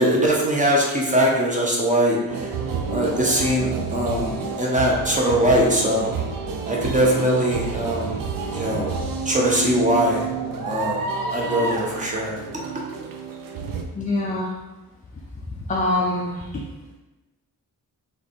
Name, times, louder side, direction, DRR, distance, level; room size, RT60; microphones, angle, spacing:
voice 1, 0.0-2.5 2.9-6.1 6.7-8.2 8.5-8.9 9.3-10.3 10.6-12.4, equal, 20° right, -2 dB, 0.7 m, -21 dB
sound 1, 2.3-13.8, right 5 dB, 60° right, 0.5 m, -29 dB
voice 2, 14.0-14.5 15.7-16.7, left 2 dB, 20° left, -3 dB, 0.3 m, -24 dB
3.3 x 3.3 x 4.1 m, 1.2 s
wide cardioid pair, 160°, 37 cm